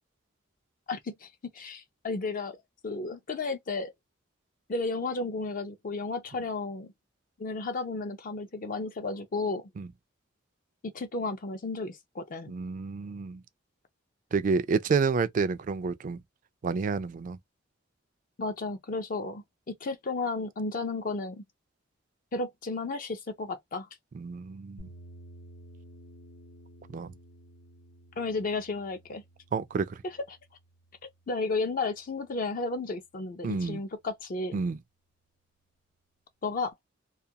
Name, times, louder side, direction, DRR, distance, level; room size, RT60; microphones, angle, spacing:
voice 1, 0.9-1.3 1.5-2.6 2.8-3.9 4.7-6.9 7.4-9.6 10.8-12.5 18.4-21.4 22.3-23.9 28.2-29.2 30.0-30.4 31.3-34.6 36.4-36.7, left 3 dB, 45° left, 0.5 m, -33 dB
voice 2, 12.5-13.4 14.3-16.2 16.6-17.4 24.1-24.9 26.9-27.1 29.5-30.0 33.4-33.8 34.5-34.8, right 5 dB, 40° right, 0.3 m, -29 dB
sound 1, 24.8-32.9, right 1 dB, 80° left, 0.8 m, -53 dB
2.3 x 2.2 x 2.7 m
head